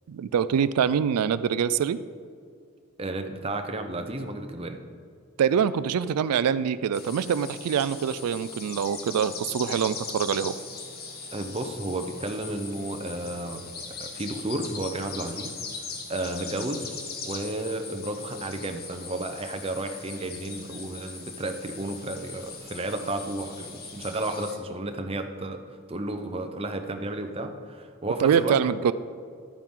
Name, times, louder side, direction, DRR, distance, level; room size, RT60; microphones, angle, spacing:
voice 1, 0.1-2.0 5.4-10.5 28.2-28.9, right 7 dB, 90° right, 14 dB, 0.3 m, -24 dB
voice 2, 3.0-4.8 11.3-13.7 14.0-15.5 16.1-16.9 17.2-28.6, right 2 dB, 25° right, 6 dB, 0.7 m, -32 dB
sound 1, 6.9-24.6, left 4 dB, 45° left, 1.3 m, -40 dB
11.5 x 9.1 x 3.7 m, 2.3 s
head